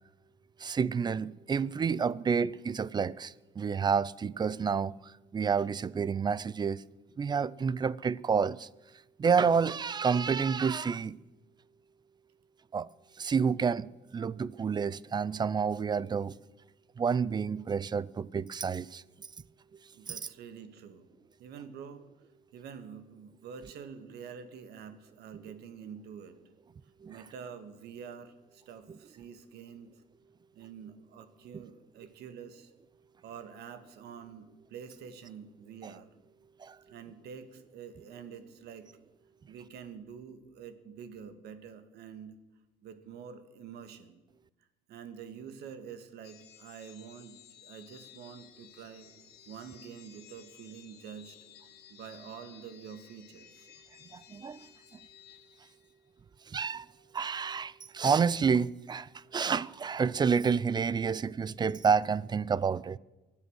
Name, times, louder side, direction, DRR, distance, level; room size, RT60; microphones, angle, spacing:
voice 1, 0.6-6.8 7.2-8.7 9.2-11.2 12.7-12.9 13.2-16.3 17.0-19.0 20.1-20.2 27.0-27.1 36.6-36.8 54.1-54.6 56.5-56.9 57.1-63.0, right 6 dB, 25° right, 0.4 m, -29 dB
voice 2, 19.9-21.1 21.4-22.1 22.5-26.4 27.1-29.9 30.5-32.7 33.2-36.1 36.9-38.9 39.5-42.4 42.8-44.2 44.9-49.1 49.5-51.6 51.9-53.7 56.8-57.0, right 7 dB, 75° right, 1.7 m, -47 dB
sound 1, 46.2-56.1, left 10 dB, 70° left, 2.2 m, -56 dB
23.5 x 8.3 x 6.4 m
cardioid pair, 110°, 17 cm